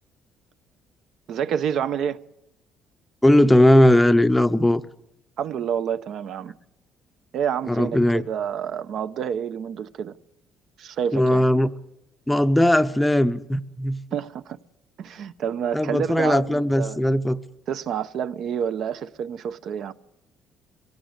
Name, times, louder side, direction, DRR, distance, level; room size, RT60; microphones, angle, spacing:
voice 1, 1.3-2.2 5.4-6.5 7.3-10.1 10.8-11.4 14.1-14.6 15.0-17.0 17.7-19.9, right 8 dB, 55° right, 0.8 m, -28 dB
voice 2, 3.2-4.8 7.7-8.2 11.1-11.7 12.3-14.0 15.7-17.4, left 1 dB, 5° left, 0.7 m, -18 dB
23.0 x 16.5 x 8.1 m
cardioid pair, 145°, 0 cm